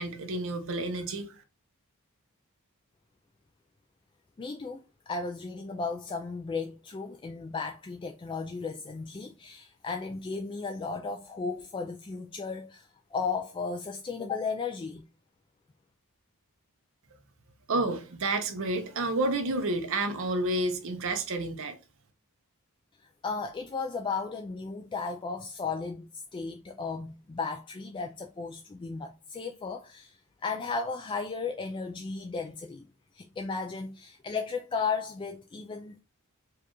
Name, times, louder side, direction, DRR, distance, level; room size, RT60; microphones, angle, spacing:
voice 1, 0.0-1.3 17.7-21.7, right 2 dB, 65° right, 0.8 m, -30 dB
voice 2, 4.4-15.0 23.2-32.9 33.1-36.0, left 4 dB, 20° left, 0.3 m, -35 dB
4.6 x 2.4 x 2.9 m
head